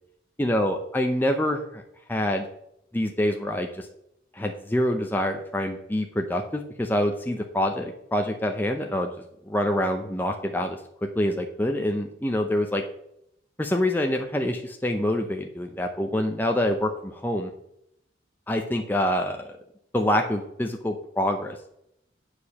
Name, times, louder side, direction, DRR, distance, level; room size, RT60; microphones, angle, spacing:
voice 1, 0.4-1.8 2.1-2.5 2.9-3.9 4.3-9.1 9.5-10.8 11.2-12.8 13.6-17.5 18.5-19.5 19.9-21.6, left 1 dB, 10° left, 3 dB, 0.6 m, -26 dB
8.4 x 4.9 x 7.0 m, 0.77 s
head